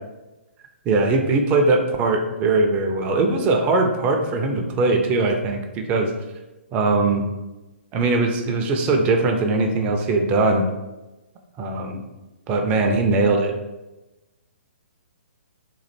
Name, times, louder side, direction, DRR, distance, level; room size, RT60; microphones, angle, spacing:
voice 1, 0.9-6.1 6.7-7.2 7.9-10.6 11.6-12.0 12.5-13.5, right 3 dB, 20° right, 3 dB, 0.4 m, -20 dB
3.1 x 2.5 x 4.2 m, 1.1 s
figure-of-eight pair, 130°, 7 cm